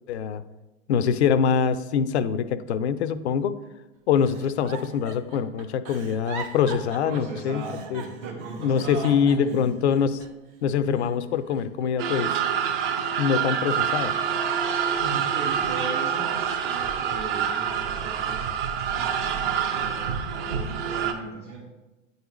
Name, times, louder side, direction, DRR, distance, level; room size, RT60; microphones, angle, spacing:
voice 1, 0.1-0.4 0.9-3.6 4.1-8.0 8.6-10.2 10.6-12.3 13.2-14.1, left 7 dB, 60° left, 13 dB, 0.5 m, -24 dB
Giggle, 4.2-10.5 10.9-11.9 12.3-13.5 14.0-14.3, right 5 dB, 20° right, 0.3 m, -43 dB
voice 2, 7.0-9.6 14.9-16.3 16.6-21.7, right 3 dB, 70° right, -6 dB, 1.5 m, -38 dB
sound 1, 12.0-21.1, right 8 dB, 45° right, 0.6 m, -26 dB
9.0 x 3.9 x 3.0 m, 1.1 s
figure-of-eight pair, 100°, 39 cm